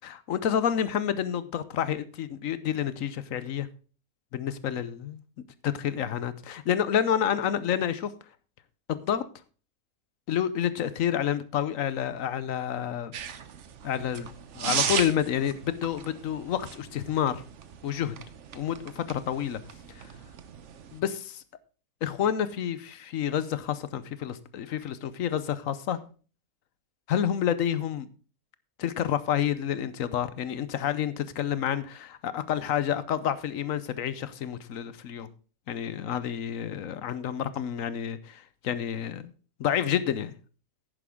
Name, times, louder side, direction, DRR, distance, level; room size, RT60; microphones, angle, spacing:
voice 1, 0.0-3.7 4.3-5.2 5.6-8.1 8.9-9.2 10.3-13.1 13.8-17.4 17.8-18.1 18.5-19.6 19.9-20.1 20.9-21.4 22.0-26.0 27.1-28.1 28.8-35.3 35.7-39.3 39.6-40.4, left 9 dB, 65° left, 1.1 m, -29 dB
sound 1, 13.1-21.0, right 8 dB, 55° right, 1.1 m, -36 dB
10.0 x 10.0 x 3.6 m
omnidirectional pair, 1.6 m